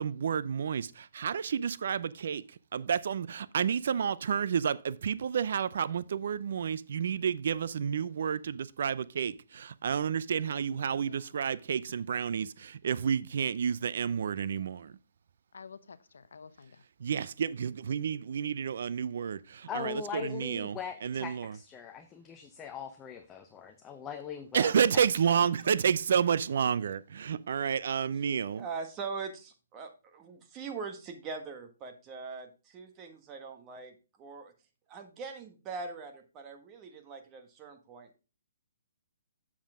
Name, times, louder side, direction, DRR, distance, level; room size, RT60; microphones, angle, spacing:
voice 1, 0.0-2.4 2.7-14.9 17.0-21.6 24.5-28.7, right 7 dB, 65° right, 0.5 m, -30 dB
voice 2, 10.8-11.3 15.5-16.8, left 5 dB, 85° left, 0.8 m, -51 dB
voice 3, 19.7-25.3, left 8 dB, 15° left, 0.7 m, -41 dB
voice 4, 28.6-34.5 34.9-38.2, right 4 dB, 25° right, 1.5 m, -42 dB
7.3 x 7.3 x 3.6 m
hypercardioid pair, 150°, 0 cm